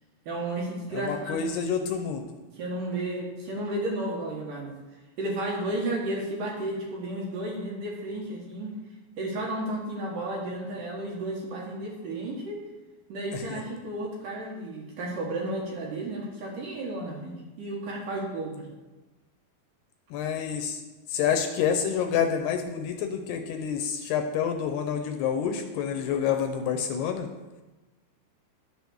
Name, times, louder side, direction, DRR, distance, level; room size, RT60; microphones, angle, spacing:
voice 1, 0.3-1.8 2.5-8.8 9.2-12.6 13.1-18.7, right 1 dB, 60° right, -2 dB, 2.7 m, -33 dB
voice 2, 0.9-2.3 13.3-13.6 20.1-20.8 21.1-27.3, left 7 dB, 75° left, 5 dB, 2.6 m, -28 dB
11.5 x 6.9 x 6.3 m, 1.1 s
omnidirectional pair, 5.1 m